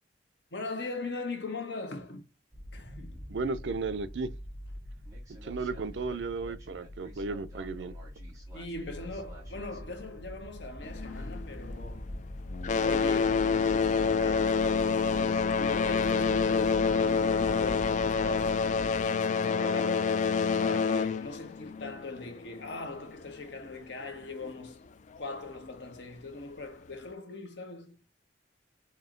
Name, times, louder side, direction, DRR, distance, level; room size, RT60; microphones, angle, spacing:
voice 1, 0.5-2.2 2.7-3.2 8.5-12.1 12.6-18.7 19.0-20.3 20.6-24.8 25.2-28.0, left 3 dB, 70° left, 1.1 m, -40 dB
sound 1, 2.5-19.0, equal, 20° right, 2.1 m, -43 dB
voice 2, 3.3-4.3 5.4-7.9, right 4 dB, 75° right, 0.5 m, -34 dB
sound 2, 10.8-12.2 12.5-22.8 23.7-23.8 24.4-24.5 25.2-25.3, left 5 dB, 40° left, 0.3 m, -27 dB
4.5 x 2.8 x 3.7 m
head